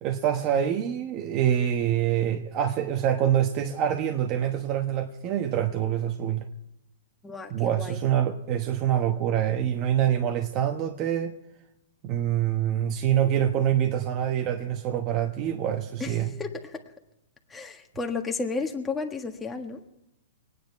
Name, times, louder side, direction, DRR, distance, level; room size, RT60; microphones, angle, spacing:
voice 1, 0.0-6.4 7.5-11.3 12.0-16.3, right 10 dB, 35° right, 4 dB, 1.1 m, -25 dB
voice 2, 7.2-8.0 16.0-16.8 17.5-19.8, left 4 dB, 10° left, 3 dB, 1.6 m, -33 dB
23.5 x 9.7 x 4.6 m, 0.84 s
hypercardioid pair, 140°, 0 cm